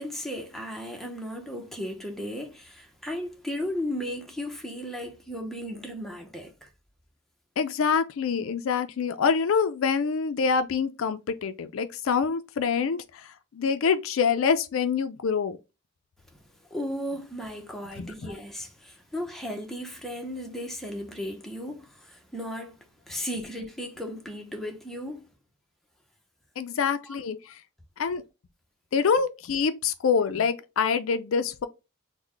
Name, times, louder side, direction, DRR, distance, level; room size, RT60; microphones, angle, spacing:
voice 1, 0.0-6.7 16.7-25.3 27.0-27.2, equal, ahead, 0.7 m, -35 dB
voice 2, 7.6-13.3 13.5-15.6 18.0-18.3 26.6-27.5 28.0-28.2 28.9-31.7, left 6 dB, 80° left, 0.4 m, -26 dB
3.8 x 2.2 x 3.1 m
head